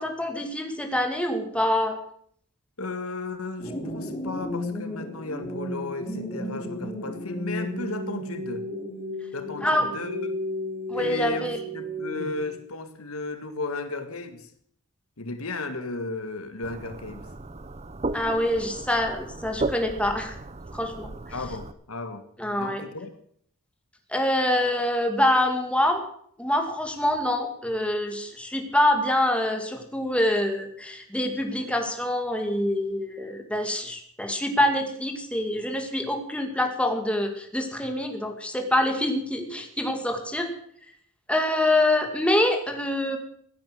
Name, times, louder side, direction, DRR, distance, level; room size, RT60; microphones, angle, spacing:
voice 1, 0.0-2.0 9.6-9.8 10.9-11.6 18.1-20.3 20.7-21.1 22.4-22.8 24.1-26.0 26.4-40.5 41.3-43.2, left 1 dB, 5° left, 4 dB, 2.3 m, -25 dB
voice 2, 2.8-8.6 9.3-10.4 10.9-14.5 15.2-17.2 21.3-22.2 22.6-23.1, left 2 dB, 80° left, 9 dB, 1.7 m, -34 dB
sound 1, 3.6-12.6, left 1 dB, 30° left, 4.5 m, -33 dB
sound 2, 16.6-21.7, right 2 dB, 30° right, 0.8 m, -35 dB
16.5 x 9.5 x 7.9 m, 0.64 s
head